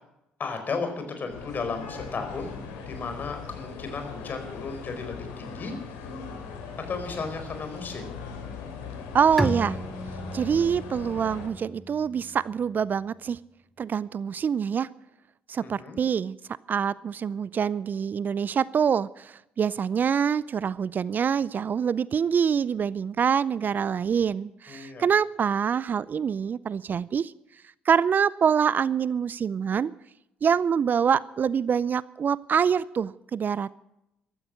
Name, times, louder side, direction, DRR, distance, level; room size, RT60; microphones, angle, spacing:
voice 1, 0.4-2.5 2.9-5.7 6.8-8.1 15.6-16.0 24.7-25.0, left 4 dB, 45° left, 6 dB, 4.6 m, -34 dB
sound 1, 1.3-11.5, left 5 dB, 75° left, 2.9 m, -39 dB
voice 2, 9.1-9.8 10.3-13.4 13.8-14.9 15.5-16.4 16.7-27.3 27.9-29.9 30.4-33.7, right 7 dB, 45° right, 21 dB, 0.5 m, -25 dB
Bowed string instrument, 9.4-12.9, equal, ahead, 0.9 m, -34 dB
15.0 x 13.5 x 6.3 m, 0.85 s
hypercardioid pair, 50°, 4 cm